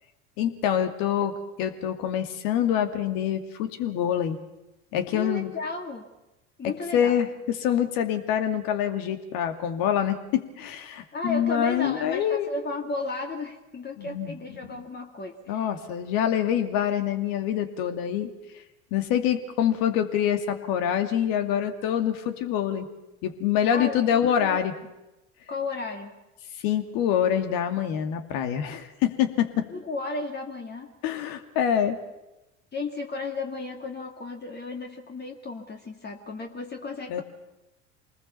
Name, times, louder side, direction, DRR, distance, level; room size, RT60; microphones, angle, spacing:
voice 1, 0.4-4.4 4.9-5.5 6.9-12.5 14.0-14.8 15.5-18.3 18.9-22.9 23.2-24.7 26.6-29.7 31.0-32.0 37.1-37.2, left 9 dB, 60° left, 7 dB, 2.6 m, -26 dB
voice 2, 5.1-6.1 6.6-7.1 11.1-15.7 23.7-24.6 25.5-26.1 29.7-30.9 32.7-37.2, left 3 dB, 25° left, 2 dB, 2.3 m, -34 dB
26.0 x 20.0 x 7.0 m, 0.99 s
hypercardioid pair, 80°, 38 cm